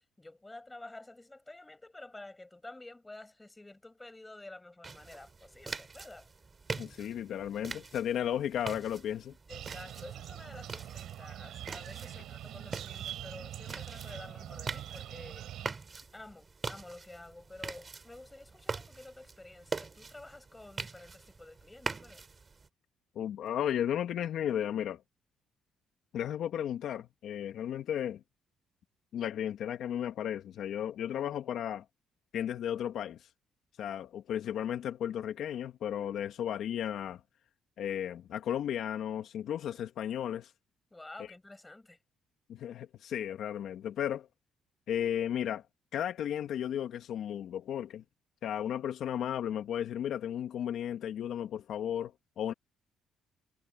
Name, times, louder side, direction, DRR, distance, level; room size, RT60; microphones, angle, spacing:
voice 1, 0.0-6.3 9.5-15.7 16.1-22.2 40.9-42.0, left 2 dB, 15° left, 6.4 m, -50 dB
sound 1, 4.8-22.7, right 4 dB, 30° right, 6.5 m, -44 dB
voice 2, 6.7-9.3 23.2-25.0 26.1-28.2 29.1-31.8 32.3-33.3 33.8-37.2 37.8-40.5 42.5-44.3 44.9-45.6 45.9-48.0 48.4-52.5, left 10 dB, 75° left, 2.1 m, -34 dB
sound 2, 9.5-15.7, right 12 dB, 80° right, 3.9 m, -43 dB
cardioid pair, 90°, 0 cm